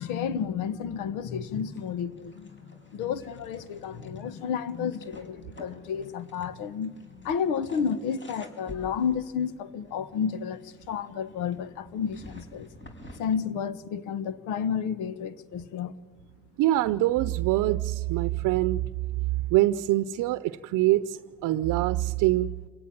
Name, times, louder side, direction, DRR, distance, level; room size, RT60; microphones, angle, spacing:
voice 1, 0.0-12.7 13.1-15.9 19.3-19.4, left 7 dB, 85° left, 1.3 m, -31 dB
sound 1, 1.4-13.4, left 1 dB, 40° left, 5.2 m, -51 dB
voice 2, 16.6-18.8 19.5-22.5, right 15 dB, 80° right, 0.7 m, -24 dB
27.5 x 18.0 x 9.9 m
supercardioid pair, 55°, 31 cm